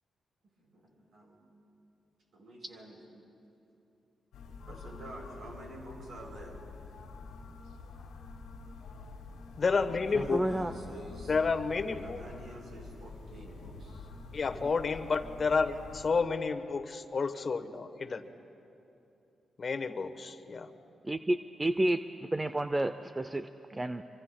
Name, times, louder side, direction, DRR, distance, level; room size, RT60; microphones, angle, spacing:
voice 1, 0.6-1.4 2.3-3.0 4.6-6.6 10.0-11.4 12.0-14.1 15.7-15.8, right 1 dB, 70° right, -2 dB, 4.3 m, -48 dB
sound 1, 4.3-16.2, left 4 dB, 85° left, 1.6 m, -47 dB
voice 2, 9.6-10.4 11.3-12.2 14.3-18.2 19.6-20.7, left 4 dB, 50° left, 9 dB, 1.0 m, -30 dB
voice 3, 10.1-10.7 14.6-14.7 21.0-24.0, right 1 dB, 25° right, 10 dB, 0.5 m, -31 dB
25.0 x 24.5 x 2.2 m, 2.8 s
supercardioid pair, 45°, 0 cm